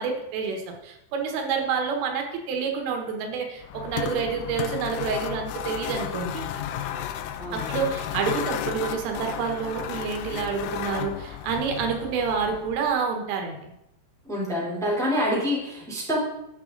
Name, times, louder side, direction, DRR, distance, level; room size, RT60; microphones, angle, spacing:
voice 1, 0.0-6.5 7.5-13.7, right 5 dB, 80° right, 3 dB, 3.9 m, -28 dB
sound 1, 3.6-13.0, left 10 dB, 85° left, 3.2 m, -33 dB
voice 2, 7.4-7.8 14.2-16.2, equal, ahead, -5 dB, 2.6 m, -27 dB
11.0 x 9.4 x 4.0 m, 0.85 s
omnidirectional pair, 5.6 m